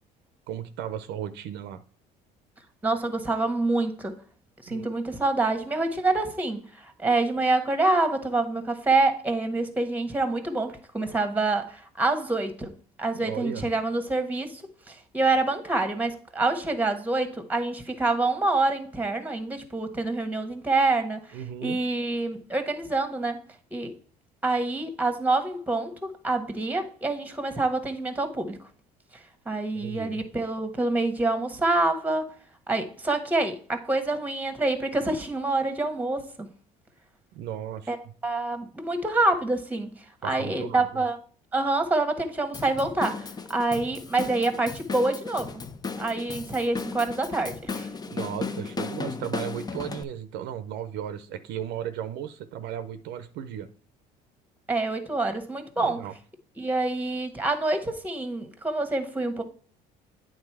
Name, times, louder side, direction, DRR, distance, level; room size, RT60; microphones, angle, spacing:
voice 1, 0.5-1.8 4.7-4.9 13.1-13.7 21.3-21.8 29.7-30.2 37.3-38.1 40.2-41.0 48.1-53.7 55.8-56.1, right 10 dB, 70° right, 0.6 m, -35 dB
voice 2, 2.8-4.2 4.6-12.7 13.0-14.6 14.9-23.4 23.7-23.9 24.4-28.6 29.4-32.3 32.7-36.5 37.9-38.0 38.2-39.9 40.2-41.2 41.5-45.6 46.0-47.9 54.7-56.0 56.6-59.4, right 2 dB, 10° right, 1.2 m, -26 dB
Drum kit / Drum, 42.5-50.0, left 4 dB, 20° left, 0.6 m, -35 dB
8.7 x 3.8 x 4.7 m
supercardioid pair, 90°, 18 cm